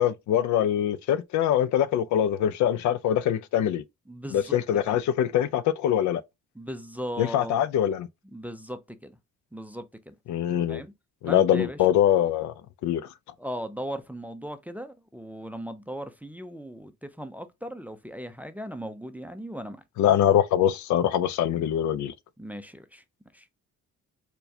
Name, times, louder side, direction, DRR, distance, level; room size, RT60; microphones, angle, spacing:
voice 1, 0.0-3.8 4.3-6.2 7.2-8.1 10.3-10.8 11.2-12.5 12.8-13.0 20.0-22.1, left 10 dB, 70° left, 0.4 m, -23 dB
voice 2, 4.1-4.6 4.9-5.0 6.6-7.6 8.3-9.1 9.5-10.1 10.7-10.9 11.3-11.8 13.4-19.8 22.4-23.0 23.3-23.5, equal, 5° right, 0.4 m, -38 dB
4.4 x 2.2 x 2.7 m
cardioid pair, 90°, 30 cm